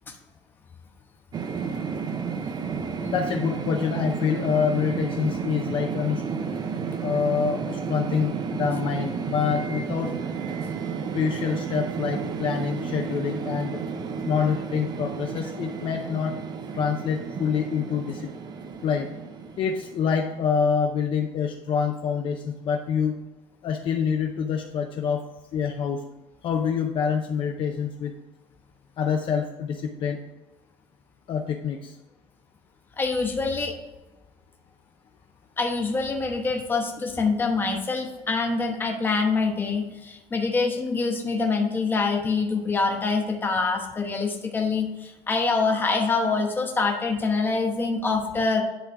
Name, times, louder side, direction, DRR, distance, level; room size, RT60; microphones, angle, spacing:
sound 1, 1.3-20.5, right 6 dB, 35° right, 0.6 m, -32 dB
voice 1, 3.0-6.2 7.0-10.1 11.1-13.8 14.2-16.3 16.7-18.2 18.8-19.1 19.6-23.1 23.6-25.2 25.5-26.0 26.4-28.1 29.0-30.2 31.3-31.9, left 7 dB, 45° left, 3 dB, 0.6 m, -26 dB
voice 2, 33.0-33.8 35.6-48.6, left 4 dB, 15° left, 2 dB, 1.0 m, -25 dB
10.5 x 3.8 x 4.6 m, 1.1 s
cardioid pair, 165°, 12 cm